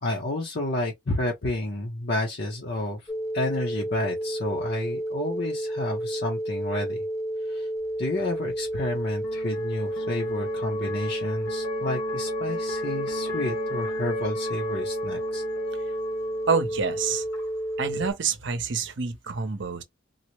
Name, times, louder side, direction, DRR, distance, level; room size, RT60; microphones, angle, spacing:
voice 1, 0.0-3.0 3.3-7.0 7.5-7.7 8.0-15.4, left 2 dB, 55° left, 0.7 m, -30 dB
sound 1, 3.1-18.1, right 1 dB, 15° left, 0.4 m, -31 dB
sound 2, 7.8-18.1, left 3 dB, 70° left, 1.1 m, -39 dB
voice 2, 16.5-17.2 17.8-19.8, right 5 dB, 60° right, 0.7 m, -27 dB
4.0 x 2.0 x 2.9 m
head